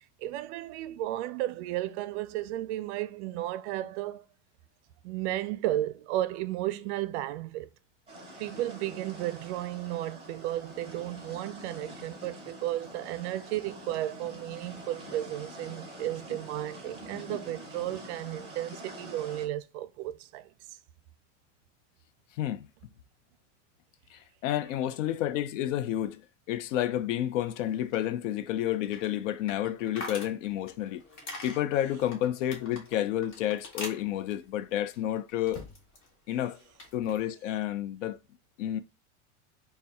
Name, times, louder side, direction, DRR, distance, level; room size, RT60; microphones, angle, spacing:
voice 1, 0.2-4.2 5.0-7.7 8.4-20.5, right 14 dB, 65° right, 0.5 m, -34 dB
sound 1, 8.1-19.5, equal, 15° right, 2.3 m, -46 dB
voice 2, 24.1-26.2 26.5-31.0 31.4-35.6 36.3-36.6 36.9-38.2 38.6-38.8, left 12 dB, 80° left, 0.6 m, -30 dB
sound 2, 27.6-36.1 36.4-37.2, left 2 dB, 35° left, 1.2 m, -46 dB
4.2 x 2.2 x 3.5 m
supercardioid pair, 145°, 37 cm